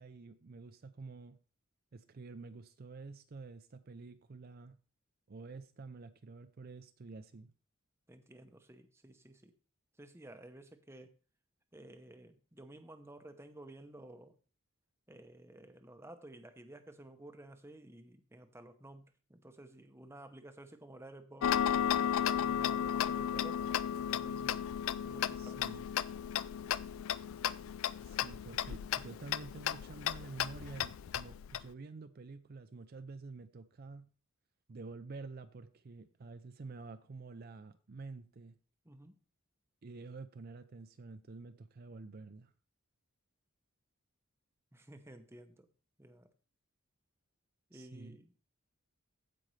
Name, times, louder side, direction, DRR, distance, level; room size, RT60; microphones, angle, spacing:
voice 1, 0.0-1.4 1.9-4.8 5.3-7.5 25.4-25.9 28.0-34.1 34.7-38.6 39.8-42.5 47.7-48.2, right 3 dB, 45° right, 10 dB, 0.4 m, -49 dB
voice 2, 8.1-9.5 10.0-11.1 11.7-14.3 15.1-24.7 25.0-25.8 38.8-39.2 44.7-45.7 46.0-46.3 47.7-48.4, right 1 dB, 10° right, 8 dB, 0.7 m, -53 dB
Tick-tock, 21.4-31.6, left 9 dB, 65° left, 0.3 m, -34 dB
15.0 x 5.2 x 3.2 m, 0.37 s
head